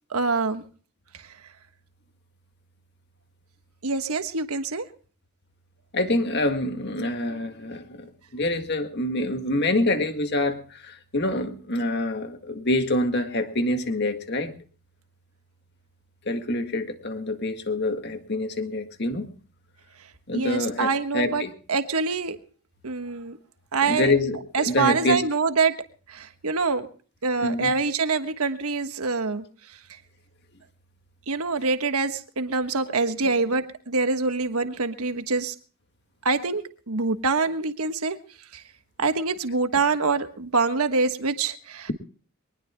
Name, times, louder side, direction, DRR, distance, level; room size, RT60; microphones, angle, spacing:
voice 1, 0.1-0.6 1.1-1.2 3.8-4.9 20.3-22.4 22.8-23.4 23.7-24.1 24.5-25.7 26.1-26.9 27.2-29.4 31.3-35.5 36.2-38.2 38.5-38.6 39.0-41.9, right 4 dB, 85° right, 1.3 m, -25 dB
voice 2, 5.9-14.5 16.3-19.3 20.3-21.5 23.8-25.2 27.4-27.7, left 2 dB, 50° left, 1.8 m, -26 dB
24.0 x 19.5 x 2.2 m
head